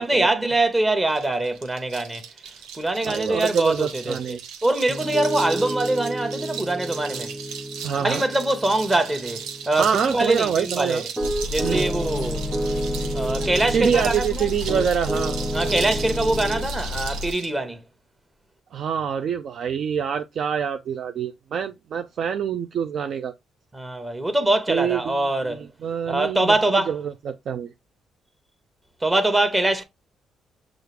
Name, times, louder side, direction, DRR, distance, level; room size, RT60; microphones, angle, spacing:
voice 1, 0.0-2.2 2.7-7.3 7.9-11.0 11.5-12.5 13.1-14.5 15.5-17.8 23.7-25.7 26.1-26.9 29.0-29.8, right 2 dB, 20° right, 0.9 m, -23 dB
sound 1, 1.1-17.5, right 7 dB, 90° right, 0.8 m, -37 dB
voice 2, 3.0-4.4 7.8-8.2 9.8-11.0 11.6-11.9 13.7-15.4 18.7-23.3 24.7-27.7, right 7 dB, 60° right, 0.4 m, -26 dB
Piano, 4.9-14.2 14.7-16.7, right 1 dB, 5° left, 0.6 m, -31 dB
sound 2, 11.2-17.3, left 2 dB, 60° left, 0.3 m, -31 dB
6.4 x 2.5 x 3.2 m
cardioid pair, 90°, 0 cm